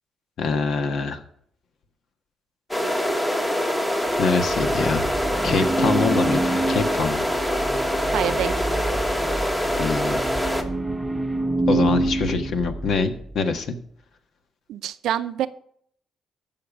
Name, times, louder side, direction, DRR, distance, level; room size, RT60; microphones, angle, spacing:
voice 1, 0.4-1.2 4.2-5.1 5.4-7.3 9.7-10.2 11.7-13.8, left 4 dB, 65° left, 7 dB, 1.4 m, -24 dB
sound 1, 2.7-10.6, equal, 10° left, 1.4 m, -24 dB
sound 2, 4.1-13.5, right 2 dB, 10° right, 0.8 m, -27 dB
voice 2, 8.1-8.6 14.7-15.5, right 11 dB, 80° right, 13 dB, 0.6 m, -26 dB
14.0 x 5.8 x 5.2 m, 0.64 s
cardioid pair, 90°, 0 cm